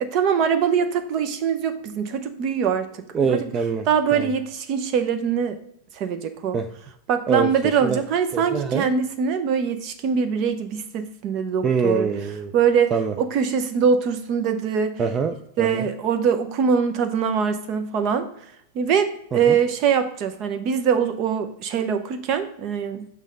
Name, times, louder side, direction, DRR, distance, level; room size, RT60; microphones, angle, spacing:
voice 1, 0.0-2.9 3.3-3.5 3.9-5.6 6.0-6.6 7.1-12.1 12.5-15.0 15.6-18.3 18.7-23.1, right 7 dB, 45° right, 9 dB, 0.9 m, -23 dB
voice 2, 3.1-3.8 4.1-4.3 6.5-6.7 7.3-7.5 7.8-8.0 8.3-8.8 11.6-12.5 12.9-13.1 15.0-15.9 19.5-19.6, right 5 dB, 25° right, 7 dB, 0.5 m, -24 dB
6.4 x 3.4 x 5.3 m, 0.75 s
hypercardioid pair, 115°, 0 cm